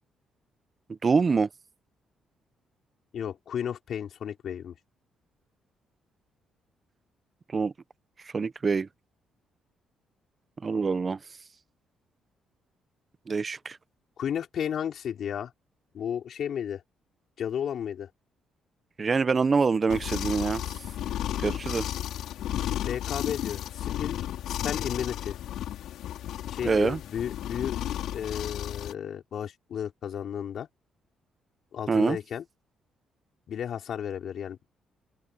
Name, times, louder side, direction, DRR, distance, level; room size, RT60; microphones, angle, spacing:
voice 1, 1.0-1.5 7.5-7.7 8.3-8.9 10.6-11.2 13.3-13.8 19.0-20.6 21.4-21.9 26.6-27.0 31.9-32.2, right 4 dB, 35° right, 0.9 m, -25 dB
voice 2, 3.1-4.7 14.2-15.5 15.9-16.8 17.4-18.1 22.8-24.2 24.5-25.4 26.5-27.7 28.1-30.7 31.7-32.4 33.5-34.7, left 9 dB, 65° left, 5.4 m, -33 dB
sound 1, 19.9-28.9, left 11 dB, 80° left, 4.0 m, -33 dB
cardioid pair, 90°, 0 cm